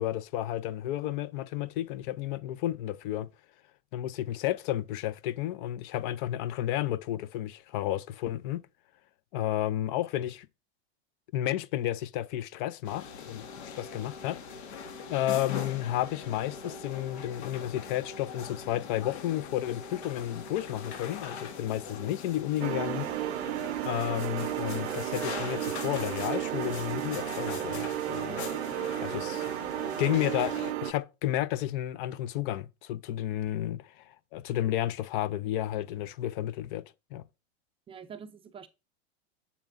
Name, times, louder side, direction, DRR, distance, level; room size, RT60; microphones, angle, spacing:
voice 1, 0.0-3.3 3.9-8.6 9.3-10.5 11.3-14.4 15.1-23.1 23.8-28.4 29.0-29.4 30.0-36.8 37.1-37.2, left 13 dB, 50° left, 0.6 m, -32 dB
sound 1, 12.8-30.7, left 5 dB, 85° left, 1.9 m, -41 dB
sound 2, 22.6-30.9, right 14 dB, 75° right, 0.6 m, -33 dB
voice 2, 28.3-28.6 37.9-38.7, right 7 dB, 15° right, 0.5 m, -44 dB
7.3 x 7.1 x 2.5 m
supercardioid pair, 140°, 32 cm